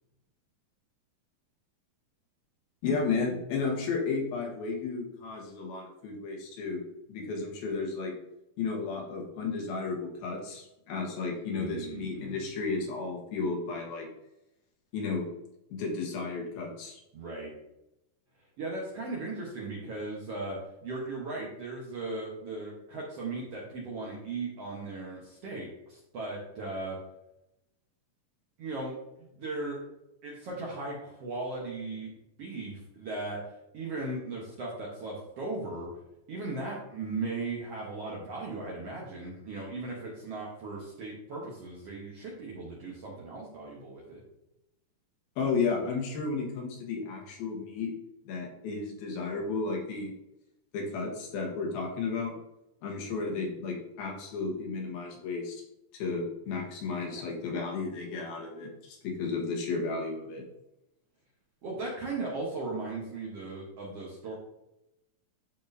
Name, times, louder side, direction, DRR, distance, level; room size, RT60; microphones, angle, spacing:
voice 1, 2.8-6.8 7.1-8.1 8.6-14.1 14.9-15.3 15.7-17.0 45.4-47.9 48.2-50.1 50.7-52.3 52.8-55.6 55.9-60.4, left 4 dB, 90° left, -1 dB, 3.3 m, -33 dB
voice 2, 11.4-12.5 17.1-17.5 18.6-27.0 28.6-28.9 29.2-29.8 30.2-32.1 32.4-35.9 36.3-44.2 57.1-57.3 61.6-64.3, right 3 dB, 65° right, -3 dB, 1.6 m, -37 dB
12.0 x 4.3 x 2.7 m, 0.88 s
omnidirectional pair, 4.1 m